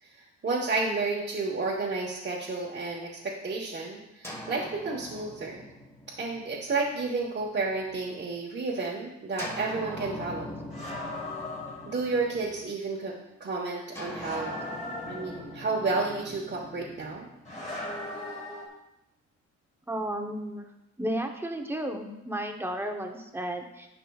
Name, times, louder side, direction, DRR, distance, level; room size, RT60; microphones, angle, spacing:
voice 1, 0.0-5.6 6.2-10.5 11.8-13.1 13.4-14.7 15.1-17.3, right 3 dB, 35° right, -4 dB, 1.3 m, -31 dB
sound 1, 4.2-8.0 9.4-12.9 13.9-18.1, left 1 dB, 10° left, 1.6 m, -43 dB
sound 2, 10.7-12.4 14.1-15.8 17.4-18.7, left 2 dB, 25° left, 2.1 m, -38 dB
voice 2, 19.9-20.7 21.0-23.9, right 1 dB, 10° right, 4 dB, 0.9 m, -33 dB
10.5 x 5.4 x 2.4 m, 0.92 s
cardioid pair, 90°, 30 cm